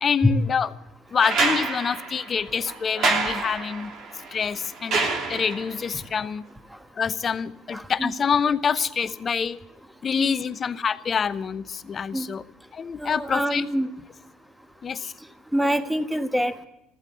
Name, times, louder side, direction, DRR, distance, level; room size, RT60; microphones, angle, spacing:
voice 1, 0.0-0.7 1.1-3.9 4.3-6.4 7.0-9.6 10.0-12.4 12.7-13.7 14.8-15.1, left 6 dB, 35° left, 14 dB, 0.9 m, -26 dB
sound 1, 1.2-5.8 7.4-7.5, right 3 dB, 50° right, 3.2 m, -27 dB
voice 2, 7.7-8.1 10.2-10.3 12.1-12.3 13.0-13.9 15.5-16.7, equal, 5° right, 10 dB, 1.5 m, -25 dB
15.0 x 13.0 x 7.0 m, 0.88 s
hypercardioid pair, 65°, 0 cm